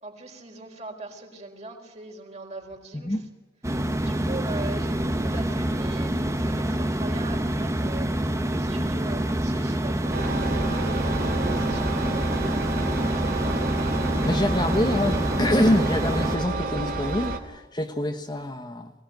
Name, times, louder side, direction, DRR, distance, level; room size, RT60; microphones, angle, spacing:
voice 1, 0.0-3.2 4.0-13.4, right 2 dB, 40° right, 4.4 m, -41 dB
voice 2, 2.9-3.3 14.2-18.9, left 1 dB, 25° left, 1.3 m, -25 dB
sound 1, 3.6-16.4, right 1 dB, 15° right, 1.1 m, -26 dB
Engine, 10.1-17.4, right 2 dB, 55° right, 2.5 m, -30 dB
22.5 x 17.5 x 9.3 m
head